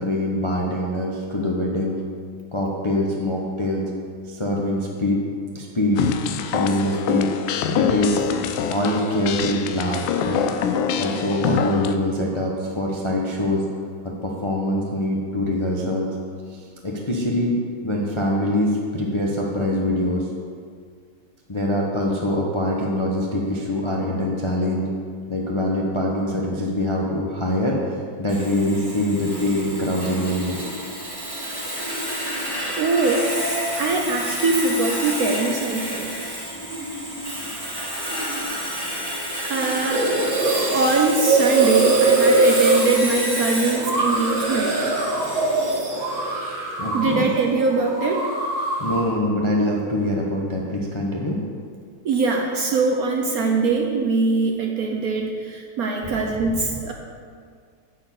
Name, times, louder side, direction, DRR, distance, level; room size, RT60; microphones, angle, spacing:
voice 1, 0.0-2.0 2.5-3.8 4.3-5.2 5.5-6.0 6.5-7.3 7.8-8.3 8.7-10.4 11.0-13.6 14.0-16.1 16.5-17.6 17.8-20.3 21.5-24.9 25.3-30.6 46.8-47.3 48.8-51.4, left 1 dB, 30° left, -3 dB, 0.5 m, -24 dB
sound 1, 6.0-12.0, left 7 dB, 80° left, 1.3 m, -25 dB
Sawing, 28.3-45.8, equal, 10° right, 1.9 m, -30 dB
voice 2, 32.7-33.3 33.8-36.1 39.4-40.1 40.7-44.7 46.9-48.3 52.0-56.9, right 3 dB, 60° right, 2 dB, 1.0 m, -22 dB
sound 2, 39.9-47.3 47.6-49.1, right 3 dB, 75° right, 2.5 m, -22 dB
9.6 x 4.5 x 7.7 m, 2.1 s
omnidirectional pair, 2.1 m